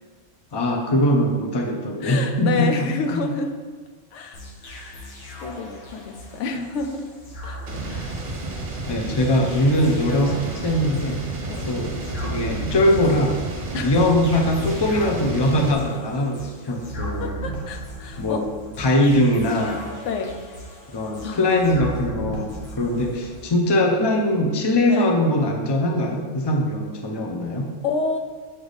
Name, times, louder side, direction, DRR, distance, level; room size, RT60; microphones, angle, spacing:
voice 1, 0.5-2.7 3.1-3.3 8.9-11.2 11.7-13.3 13.8-17.3 18.2-18.4 18.8-19.9 20.9-27.7, left 1 dB, 30° left, 1 dB, 0.6 m, -21 dB
voice 2, 2.0-3.5 4.1-5.1 5.4-7.0 7.4-8.2 11.5-11.8 13.7-14.0 17.2-18.4 20.1-20.3 21.2-21.4 24.9-25.2 27.8-28.2, left 4 dB, 75° left, 5 dB, 1.0 m, -29 dB
sound 1, 4.3-23.5, right 1 dB, 60° left, 1.3 m, -37 dB
sound 2, 7.7-15.7, right 2 dB, 50° right, 0.9 m, -31 dB
7.8 x 3.3 x 4.0 m, 1.5 s
omnidirectional pair, 1.2 m